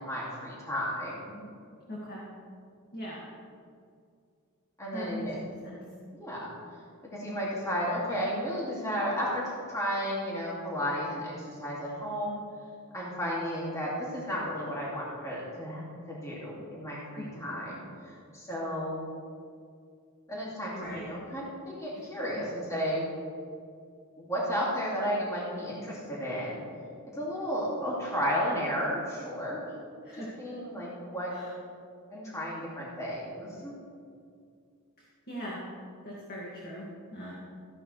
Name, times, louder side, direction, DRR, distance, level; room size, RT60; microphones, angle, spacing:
voice 1, 0.0-1.4 4.8-5.3 6.1-6.5 7.1-9.4 9.7-12.4 12.9-19.0 20.3-23.0 24.2-26.6 27.1-29.6 30.1-31.3 32.1-33.8, equal, 15° left, -6 dB, 2.3 m, -33 dB
voice 2, 1.9-2.3 2.9-3.2 4.9-5.2 5.6-5.8 17.2-17.5 20.8-21.1 22.4-22.5 30.0-30.5 31.3-31.5 35.3-35.6 36.0-37.3, equal, 45° left, -6 dB, 2.0 m, -40 dB
15.0 x 11.0 x 3.3 m, 2.3 s
head